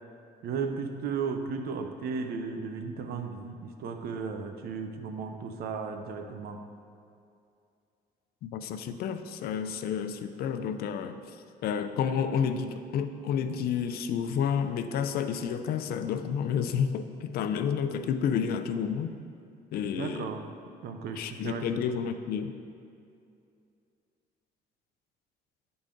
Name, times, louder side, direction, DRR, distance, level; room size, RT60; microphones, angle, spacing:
voice 1, 0.4-6.6 19.9-20.5 20.8-21.9, right 5 dB, 65° right, 6 dB, 0.7 m, -35 dB
voice 2, 8.4-11.2 11.6-19.2 19.7-20.3 21.2-22.5, left 7 dB, 65° left, 9 dB, 0.5 m, -30 dB
9.9 x 4.0 x 3.7 m, 2.5 s
cardioid pair, 110°, 17 cm